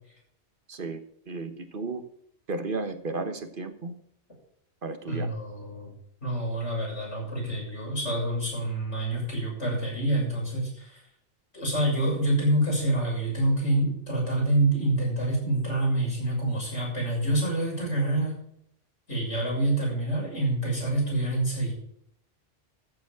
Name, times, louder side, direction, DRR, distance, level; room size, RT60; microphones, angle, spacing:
voice 1, 0.7-2.0 2.5-3.9 4.8-5.3, right 3 dB, 50° right, 8 dB, 1.4 m, -34 dB
voice 2, 5.1-5.9 6.2-11.0 11.5-18.3 19.1-21.7, right 1 dB, 75° left, -4 dB, 7.0 m, -27 dB
14.0 x 7.2 x 5.9 m, 0.68 s
omnidirectional pair, 1.2 m